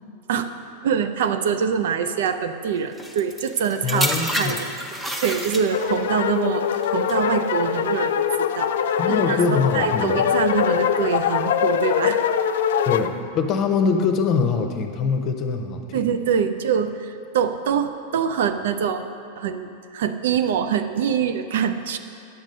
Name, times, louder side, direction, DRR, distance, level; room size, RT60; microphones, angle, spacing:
voice 1, 0.8-4.7 5.2-9.4 9.7-12.2 15.9-19.1 19.4-22.0, right 7 dB, 55° right, 8 dB, 0.5 m, -24 dB
sound 1, 3.0-6.0 6.8-7.1, equal, 5° right, 0.8 m, -28 dB
voice 2, 3.8-4.6 9.0-10.2 12.9-16.1, left 5 dB, 35° left, 5 dB, 0.8 m, -23 dB
sound 2, 5.7-13.1, left 9 dB, 60° left, 0.3 m, -23 dB
9.9 x 7.4 x 5.2 m, 2.6 s
figure-of-eight pair, 90°, 0 cm